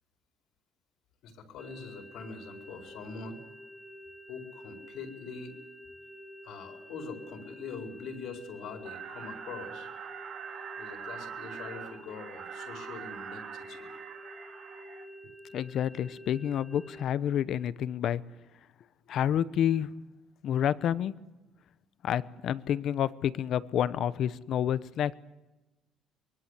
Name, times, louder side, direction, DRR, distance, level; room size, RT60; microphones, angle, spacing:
voice 1, 1.2-3.4 4.3-5.5 6.4-9.9 10.8-13.9, left 5 dB, 65° left, 4 dB, 4.7 m, -43 dB
sound 1, 1.6-17.0, equal, 5° left, 1.0 m, -49 dB
sound 2, 8.8-15.1, right 8 dB, 50° right, 3.4 m, -43 dB
voice 2, 15.5-18.2 19.1-19.9 20.4-21.1 22.0-25.1, left 10 dB, 50° left, 17 dB, 0.8 m, -29 dB
24.5 x 23.0 x 8.2 m, 1.1 s
cardioid pair, 170°, 0 cm